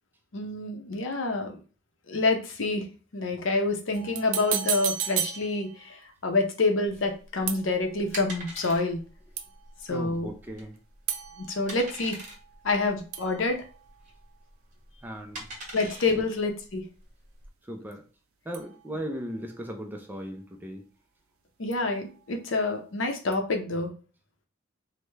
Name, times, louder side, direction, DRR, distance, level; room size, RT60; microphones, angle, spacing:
voice 1, 0.3-1.6 2.1-2.8 3.1-6.0 6.2-9.0 9.9-10.3 11.5-12.2 12.6-13.6 15.7-16.8 21.6-23.9, left 3 dB, 65° left, 4 dB, 0.6 m, -27 dB
sound 1, 3.9-6.1 7.5-8.2 9.4-9.8 11.1-12.9 13.1-14.3 18.5-19.3 21.7-22.3 23.3-23.4, right 10 dB, 85° right, 0.4 m, -35 dB
sound 2, 6.9-17.5, right 1 dB, 35° right, 0.9 m, -44 dB
voice 2, 9.9-10.8 15.0-15.5 17.6-18.0 18.4-20.9, equal, 10° right, 4 dB, 0.3 m, -37 dB
3.3 x 2.1 x 3.2 m, 0.38 s
head